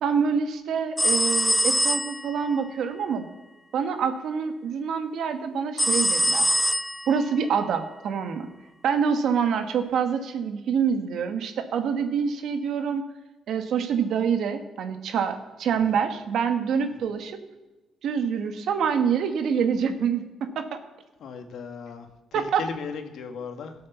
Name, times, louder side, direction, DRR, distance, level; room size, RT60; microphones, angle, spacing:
voice 1, 0.0-3.3 3.7-6.5 7.1-8.5 8.8-13.1 13.5-17.4 18.0-20.8 22.3-22.6, right 6 dB, 75° right, 8 dB, 1.4 m, -26 dB
sound 1, 1.0-2.4 5.8-7.2, equal, 5° left, 0.3 m, -23 dB
voice 2, 21.2-23.7, left 5 dB, 70° left, 6 dB, 1.5 m, -37 dB
16.5 x 6.6 x 6.9 m, 1.1 s
cardioid pair, 90°, 0 cm